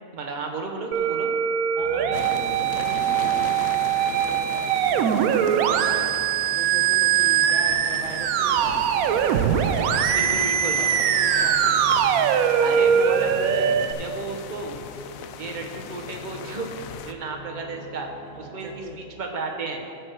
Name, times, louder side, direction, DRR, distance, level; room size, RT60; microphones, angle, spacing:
voice 1, 0.1-1.3 10.1-10.8 12.6-14.8 15.4-16.7 17.0-18.1 18.4-19.8, right 3 dB, 35° right, 2 dB, 1.1 m, -33 dB
Musical instrument, 0.9-13.9, right 9 dB, 90° right, 1.0 m, -22 dB
sound 1, 1.8-18.8, left 1 dB, 50° left, 2.2 m, -44 dB
voice 2, 1.8-6.1 6.5-8.9 9.3-10.0 10.3-12.2 18.3-19.0, right 3 dB, 65° right, 1 dB, 1.1 m, -40 dB
sound 2, 2.1-17.1, left 8 dB, 80° left, 1.0 m, -38 dB
14.0 x 6.5 x 4.6 m, 2.3 s
omnidirectional pair, 1.5 m